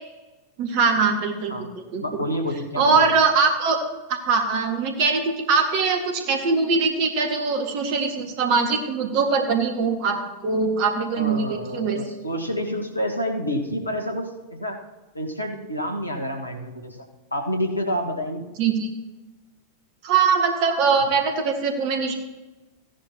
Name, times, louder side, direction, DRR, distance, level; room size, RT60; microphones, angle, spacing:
voice 1, 0.6-2.2 2.8-3.8 4.1-12.0 18.6-18.9 20.0-22.1, right 5 dB, 45° right, 5 dB, 1.8 m, -22 dB
voice 2, 2.0-3.1 11.1-14.2 14.6-14.8 15.1-17.0 17.3-18.4, equal, 85° left, 2 dB, 1.6 m, -28 dB
16.0 x 10.5 x 2.9 m, 1.1 s
figure-of-eight pair, 90°, 0 cm